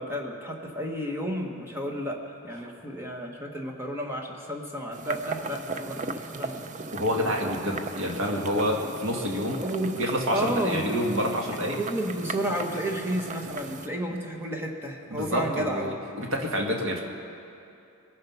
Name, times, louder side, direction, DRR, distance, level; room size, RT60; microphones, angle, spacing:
voice 1, 0.0-6.6 9.6-11.0 11.7-15.9, right 1 dB, 10° right, 1 dB, 1.3 m, -32 dB
sound 1, 4.9-13.9, right 3 dB, 35° right, 0.5 m, -37 dB
voice 2, 6.9-9.6 10.0-11.8 15.1-17.0, equal, 65° right, 0 dB, 1.8 m, -28 dB
22.0 x 7.6 x 5.8 m, 2.7 s
head